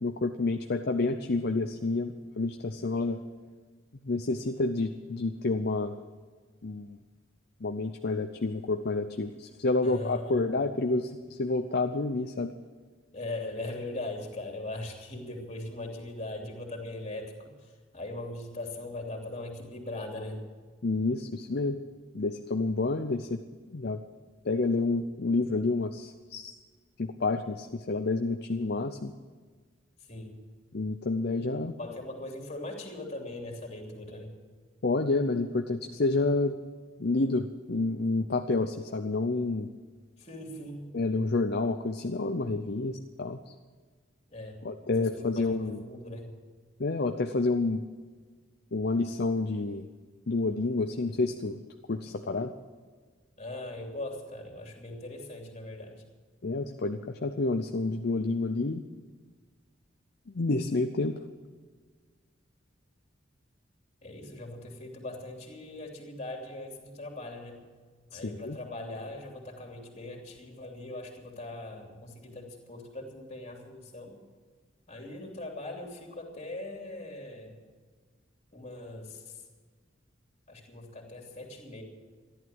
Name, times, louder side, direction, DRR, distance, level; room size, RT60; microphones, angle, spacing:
voice 1, 0.0-3.2 4.1-5.9 6.6-7.0 7.6-12.5 20.8-21.8 22.1-23.4 23.7-24.0 24.4-26.5 27.0-29.1 30.7-31.7 34.8-36.6 37.0-39.7 40.9-43.4 44.6-45.8 46.8-47.8 48.7-49.9 50.3-51.6 51.9-52.5 56.4-58.8 60.3-61.2 68.1-68.6, left 3 dB, 55° left, 6 dB, 0.6 m, -29 dB
voice 2, 9.8-10.5 13.1-20.4 30.1-30.3 31.8-34.4 40.2-41.0 44.3-44.6 44.8-46.3 53.4-56.0 64.0-67.6 68.1-74.1 74.9-77.6 78.5-79.4 80.5-81.8, left 2 dB, 35° left, 1 dB, 3.1 m, -40 dB
14.0 x 11.5 x 7.8 m, 1.5 s
head